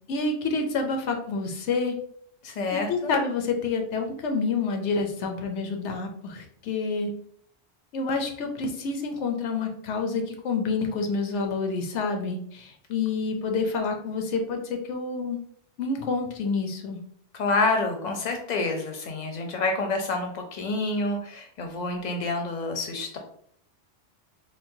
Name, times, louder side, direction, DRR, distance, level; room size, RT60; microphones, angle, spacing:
voice 1, 0.1-2.0 2.7-7.1 7.9-15.4 15.8-17.0, left 4 dB, 85° left, 4 dB, 0.9 m, -28 dB
voice 2, 2.4-3.1 17.3-23.2, left 3 dB, 50° left, 4 dB, 0.6 m, -28 dB
3.7 x 2.1 x 2.6 m, 0.64 s
omnidirectional pair, 1.2 m